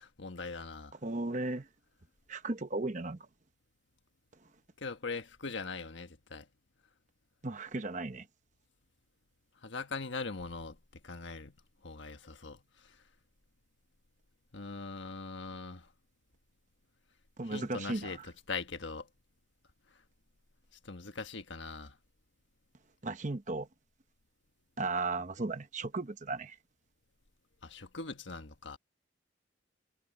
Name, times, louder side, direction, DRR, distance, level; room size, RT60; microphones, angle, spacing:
voice 1, 0.0-0.9 4.8-6.5 9.6-10.8 11.0-11.5 11.8-13.0 14.5-15.9 17.5-19.1 20.8-22.0 27.6-28.8, left 4 dB, 75° left, 1.4 m, -41 dB
voice 2, 1.0-1.7 2.3-3.3 7.4-8.3 17.4-18.2 23.0-23.7 24.8-26.6, right 2 dB, 40° right, 1.0 m, -35 dB
head